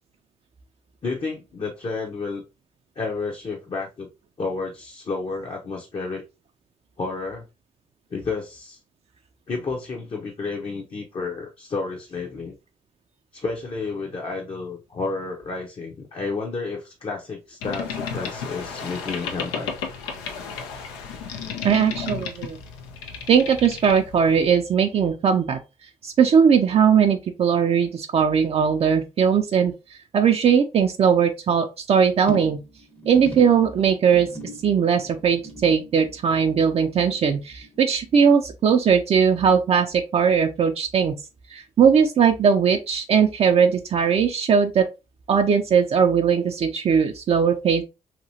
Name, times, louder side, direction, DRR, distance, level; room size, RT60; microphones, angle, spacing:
voice 1, 1.0-2.5 3.0-4.1 4.4-6.2 7.0-7.4 8.1-8.8 9.5-12.5 13.3-19.7, left 4 dB, 40° left, 0.8 m, -31 dB
Boat Water vehicle, 17.6-24.5, left 6 dB, 90° left, 0.5 m, -33 dB
voice 2, 21.6-22.6 23.3-25.6 26.0-29.7 30.1-32.6 33.1-34.3 34.6-41.1 41.5-44.9 45.3-47.8, right 7 dB, 45° right, 0.4 m, -19 dB
sound 1, 32.3-38.9 39.1-39.6 39.9-40.0, right 1 dB, 10° left, 0.7 m, -40 dB
2.9 x 2.7 x 2.6 m
hypercardioid pair, 50°, 14 cm